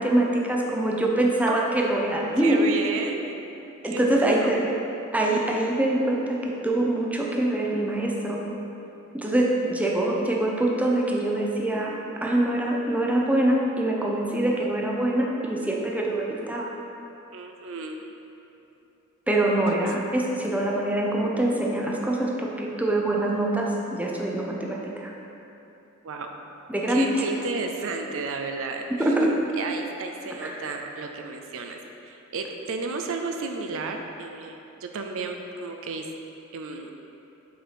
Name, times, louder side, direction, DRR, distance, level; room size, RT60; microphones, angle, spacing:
voice 1, 0.0-2.6 3.8-4.6 5.1-8.4 9.1-16.7 19.3-25.1 26.7-27.2 29.0-29.3 30.4-30.6, right 1 dB, 5° right, -2 dB, 0.6 m, -24 dB
voice 2, 2.4-3.5 3.8-4.5 14.3-14.7 17.3-18.0 26.0-26.3 26.9-29.1 29.6-36.1 36.5-36.9, right 4 dB, 65° right, 4 dB, 0.5 m, -33 dB
6.3 x 4.5 x 5.1 m, 2.9 s
head